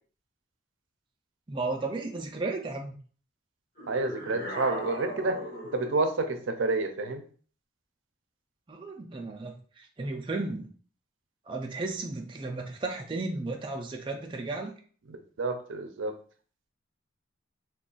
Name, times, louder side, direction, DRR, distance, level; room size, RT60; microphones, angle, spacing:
voice 1, 1.5-3.0 8.7-10.7 11.5-14.7, right 3 dB, 25° right, 1 dB, 0.3 m, -34 dB
sound 1, 3.8-6.1, left 1 dB, 50° left, 0.8 m, -38 dB
voice 2, 3.9-5.4 5.7-7.2 15.4-16.2, right 3 dB, 80° right, 6 dB, 0.5 m, -29 dB
2.4 x 2.3 x 3.8 m, 0.43 s
head